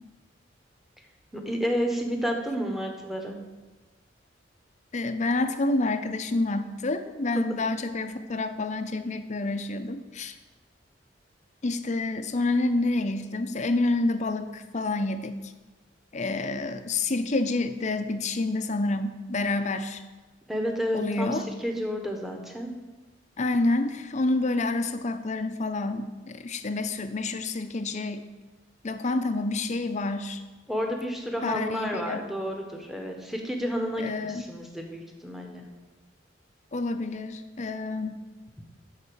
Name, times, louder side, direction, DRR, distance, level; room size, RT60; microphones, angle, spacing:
voice 1, 1.3-3.4 7.3-7.4 20.5-22.7 30.7-35.6, equal, ahead, 2 dB, 1.1 m, -31 dB
voice 2, 4.9-10.3 11.6-15.4 16.1-20.0 20.9-21.4 23.4-28.2 28.8-30.4 31.4-32.2 34.0-34.4 36.7-38.2, left 2 dB, 40° left, 9 dB, 0.6 m, -28 dB
11.0 x 4.1 x 6.9 m, 1.2 s
head